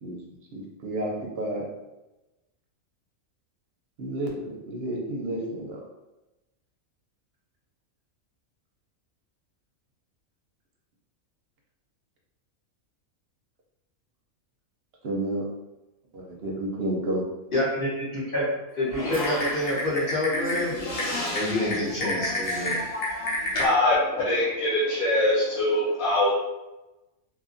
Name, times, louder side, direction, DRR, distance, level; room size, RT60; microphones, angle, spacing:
voice 1, 0.5-1.6 4.0-5.8 15.0-15.5 16.1-17.3, right 1 dB, 55° right, -1 dB, 0.8 m, -31 dB
voice 2, 17.5-18.4 18.8-20.7 21.3-22.8, left 1 dB, 45° left, -6 dB, 1.0 m, -27 dB
Typing, 18.9-23.7, left 1 dB, 70° left, 1.2 m, -29 dB
voice 3, 23.6-26.3, left 1 dB, 90° left, -8 dB, 1.1 m, -23 dB
2.8 x 2.5 x 2.5 m, 1.0 s
omnidirectional pair, 1.4 m